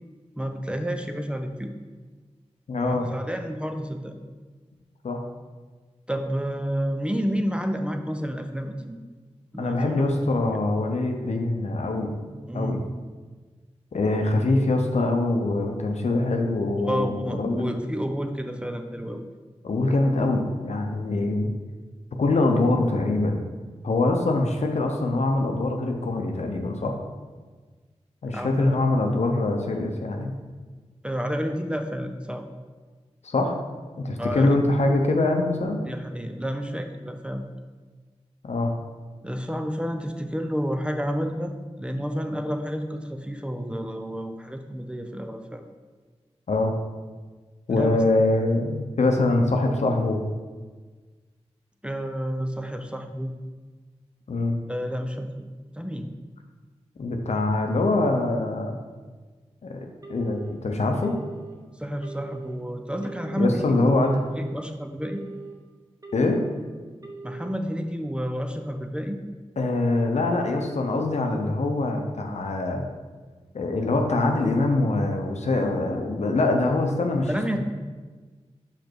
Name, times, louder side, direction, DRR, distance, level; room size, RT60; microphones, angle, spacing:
voice 1, 0.4-1.7 2.8-4.1 6.1-9.0 9.5-10.0 12.5-12.8 16.8-19.2 28.3-28.8 31.0-32.5 34.2-34.6 35.9-37.4 39.2-45.6 47.7-48.0 51.8-53.3 54.7-55.3 55.8-56.1 61.8-64.1 64.4-65.2 67.2-69.2 77.3-77.6, equal, 10° right, 5 dB, 0.6 m, -30 dB
voice 2, 2.7-3.1 5.0-5.2 9.6-12.2 12.5-12.8 13.9-17.9 19.6-21.5 22.2-23.5 23.8-27.0 28.2-30.3 33.2-33.6 34.0-35.8 38.4-38.7 46.5-46.7 47.7-50.2 54.3-54.6 57.0-58.7 59.6-61.1 63.4-64.2 66.1-66.4 69.6-72.8 73.5-77.6, left 2 dB, 80° left, 3 dB, 0.8 m, -24 dB
Telephone, 60.0-60.5 61.0-61.5 62.0-62.5 63.0-63.5 64.0-64.5 65.0-65.5 66.0-66.5 67.0-67.5, right 4 dB, 30° right, 1.1 m, -41 dB
5.2 x 5.1 x 4.6 m, 1.4 s
cardioid pair, 45°, 11 cm